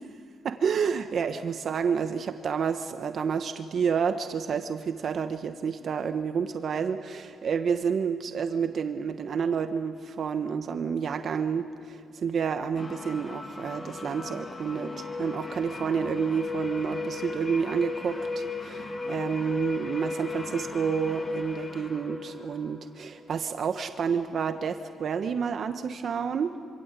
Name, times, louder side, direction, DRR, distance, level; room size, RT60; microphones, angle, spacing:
voice 1, 0.4-26.5, right 6 dB, 50° right, 8 dB, 1.1 m, -29 dB
sound 1, 12.7-23.4, left 3 dB, 25° left, 2.0 m, -36 dB
26.0 x 26.0 x 8.3 m, 2.3 s
cardioid pair, 120°, 0 cm